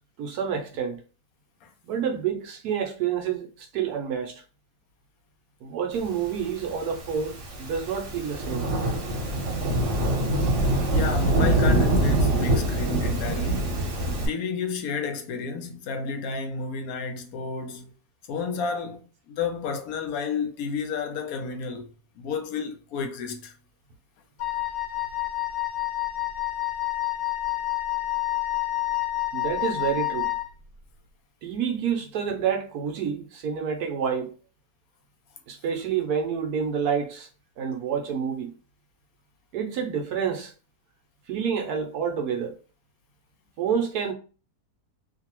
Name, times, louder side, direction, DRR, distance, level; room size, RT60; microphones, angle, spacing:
voice 1, 0.2-1.0 1.8-4.4 5.6-8.7 10.4-10.6 29.3-30.3 31.4-34.3 35.5-37.3 37.6-38.5 39.5-40.5 41.3-42.6 43.6-44.1, right 7 dB, 75° right, 1.1 m, -28 dB
Thunderstorm / Rain, 6.6-14.3, right 1 dB, 55° right, 1.0 m, -24 dB
voice 2, 10.9-13.7 14.3-17.9 18.3-21.9 22.2-23.5, left 5 dB, 70° left, 1.0 m, -31 dB
Wind instrument woodwind instrument, 24.4-30.5, left 15 dB, 85° left, 1.2 m, -28 dB
2.7 x 2.6 x 2.9 m
omnidirectional pair, 1.7 m